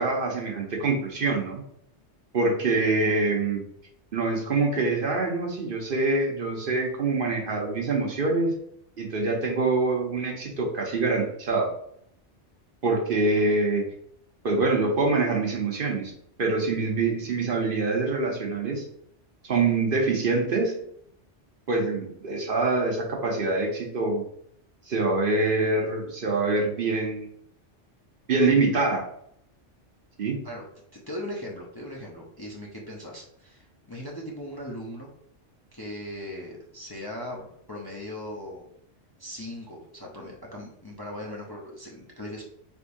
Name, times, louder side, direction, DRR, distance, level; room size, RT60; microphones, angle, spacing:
voice 1, 0.0-1.6 2.3-3.6 4.1-8.5 9.0-11.7 12.8-13.9 14.4-16.1 16.4-18.9 19.4-20.7 21.7-24.2 24.9-27.3 28.3-29.1 30.2-30.4, right 3 dB, 55° right, 1 dB, 0.9 m, -25 dB
voice 2, 30.9-35.1 35.7-38.6 39.2-42.4, left 1 dB, 25° left, -2 dB, 0.6 m, -39 dB
4.9 x 3.5 x 2.6 m, 0.70 s
omnidirectional pair, 1.2 m